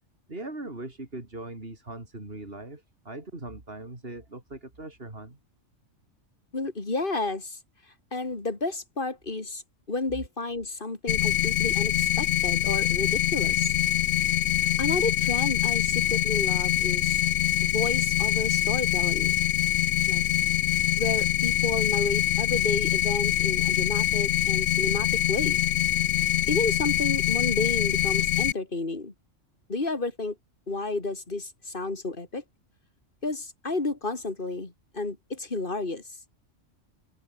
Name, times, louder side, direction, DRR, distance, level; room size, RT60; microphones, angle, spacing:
voice 1, 0.3-5.4, right 2 dB, 50° right, 4.5 m, -40 dB
voice 2, 6.5-7.6 8.1-9.6 9.9-13.7 14.8-17.2 17.6-19.3 20.1-20.2 21.0-25.6 26.5-29.1 29.7-30.3 30.7-32.4 33.2-36.0, left 3 dB, 45° left, 3.2 m, -31 dB
sound 1, 11.1-28.5, left 12 dB, 90° left, 1.1 m, -24 dB
omnidirectional pair, 1.3 m